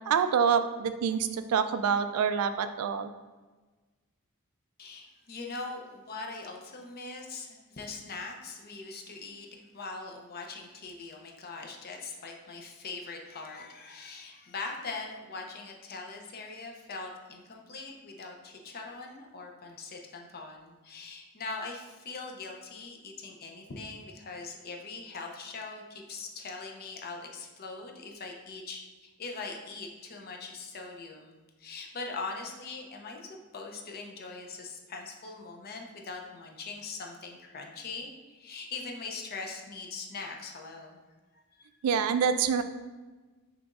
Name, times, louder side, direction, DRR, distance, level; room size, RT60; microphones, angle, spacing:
voice 1, 0.1-3.1 41.8-42.6, right 7 dB, 80° right, 10 dB, 0.3 m, -26 dB
voice 2, 4.8-41.0 41.3-41.7, left 3 dB, 45° left, 2 dB, 0.6 m, -41 dB
5.9 x 3.0 x 2.5 m, 1.3 s
head